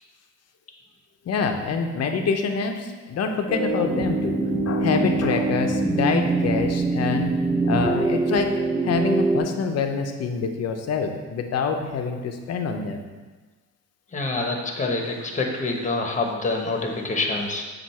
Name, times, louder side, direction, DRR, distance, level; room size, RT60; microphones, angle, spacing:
voice 1, 1.3-4.4 4.6-7.3 7.6-8.5 8.8-13.0, left 5 dB, 55° left, 4 dB, 0.7 m, -26 dB
sound 1, 3.5-9.4, right 3 dB, 25° right, 2.1 m, -23 dB
voice 2, 14.1-17.6, left 3 dB, 25° left, 2 dB, 1.1 m, -26 dB
7.6 x 2.6 x 5.6 m, 1.3 s
cardioid pair, 90°, 30 cm